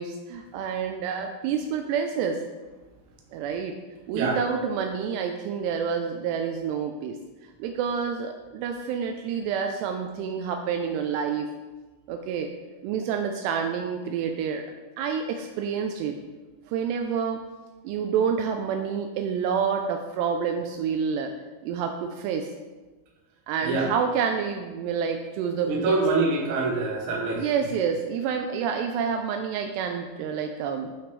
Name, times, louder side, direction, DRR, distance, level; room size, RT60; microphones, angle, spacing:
voice 1, 0.0-2.4 3.3-3.8 4.1-7.2 7.6-11.5 12.1-12.5 12.8-14.6 15.0-16.2 16.7-17.4 17.8-21.3 21.6-22.5 23.5-26.0 27.3-30.9, right 7 dB, 90° right, 5 dB, 2.3 m, -28 dB
voice 2, 23.6-23.9 25.6-27.5, right 3 dB, 65° right, -2 dB, 2.1 m, -25 dB
11.5 x 5.1 x 3.2 m, 1.2 s
omnidirectional pair, 5.4 m